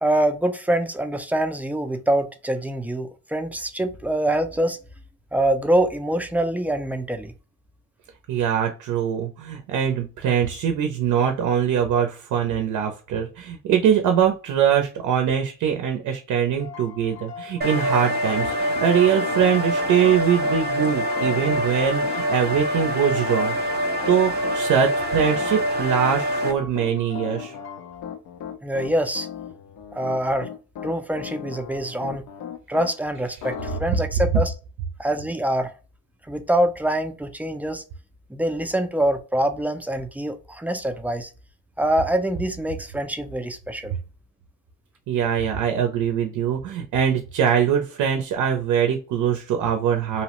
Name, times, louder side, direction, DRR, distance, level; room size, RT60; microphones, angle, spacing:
voice 1, 0.0-4.8 5.3-7.3 28.6-29.3 29.9-30.5 30.8-32.2 32.7-34.5 35.0-35.7 36.3-37.8 38.3-41.3 41.8-43.9, right 1 dB, 5° right, 7 dB, 0.4 m, -24 dB
voice 2, 8.3-23.7 24.1-27.6 45.1-50.2, right 8 dB, 80° right, 4 dB, 0.5 m, -22 dB
sound 1, 16.6-28.0, left 6 dB, 65° left, 0.9 m, -42 dB
sound 2, 17.6-26.5, equal, 35° right, 0.7 m, -25 dB
Piano, 17.8-32.9 33.4-33.8, left 8 dB, 80° left, 0.5 m, -37 dB
2.8 x 2.0 x 2.9 m, 0.33 s
cardioid pair, 90°, 30 cm